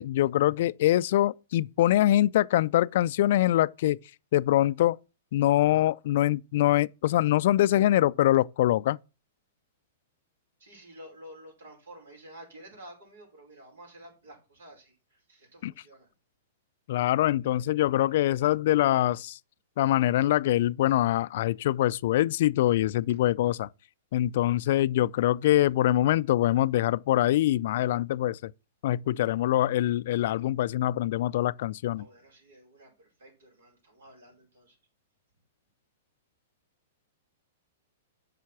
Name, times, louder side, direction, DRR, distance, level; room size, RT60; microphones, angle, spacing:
voice 1, 0.0-4.0 4.3-5.0 5.3-9.0 15.6-15.7 16.9-19.4 19.8-23.7 24.1-28.5 28.8-32.0, left 14 dB, 60° left, 0.4 m, -24 dB
voice 2, 10.6-16.1 32.0-34.8, right 1 dB, 75° right, 5.4 m, -51 dB
8.4 x 5.7 x 6.0 m
hypercardioid pair, 115°, 0 cm